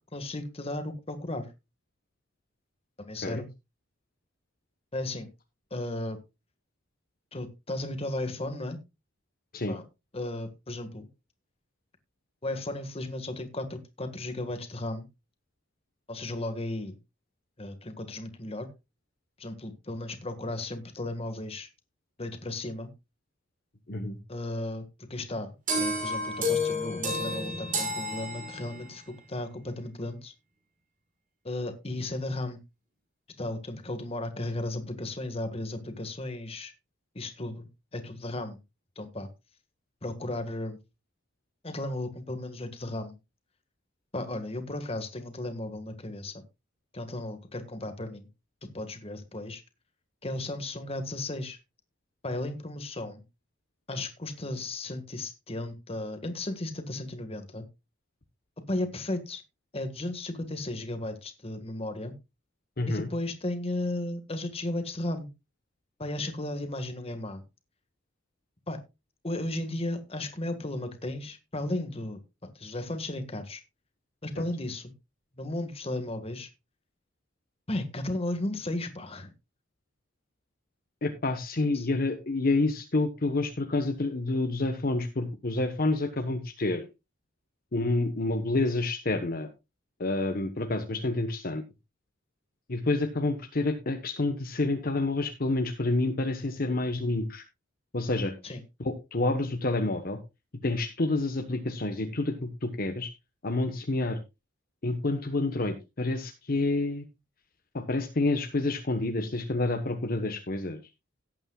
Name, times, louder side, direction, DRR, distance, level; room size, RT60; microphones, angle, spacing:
voice 1, 0.1-1.5 3.0-3.5 4.9-5.3 5.7-6.2 7.3-8.8 9.7-9.8 10.1-11.1 12.4-15.0 16.1-17.0 17.6-18.7 19.4-21.7 22.2-22.9 24.3-24.8 25.1-29.0 29.3-30.3 31.4-32.6 33.4-36.7 37.1-37.7 37.9-38.6 38.9-39.3 40.0-40.8 41.6-43.1 44.1-46.4 46.9-48.3 48.6-49.6 50.2-51.6 52.2-53.2 53.9-57.6 58.7-59.4 59.7-62.1 62.9-65.3 66.0-67.4 68.7-68.8 69.2-73.6 74.2-74.9 75.3-76.5 77.7-79.3 81.7-81.9 98.4-98.6, left 1 dB, 30° left, 8 dB, 1.7 m, -35 dB
sound 1, 25.7-29.0, left 1 dB, 45° right, 5.8 m, -30 dB
voice 2, 62.8-63.1 81.0-86.8 87.7-89.5 90.0-91.6 92.7-97.4 97.9-100.2 100.6-103.1 103.4-104.2 104.8-107.0 107.7-110.8, left 2 dB, 50° left, 6 dB, 1.2 m, -28 dB
17.5 x 8.8 x 2.4 m, 0.25 s
head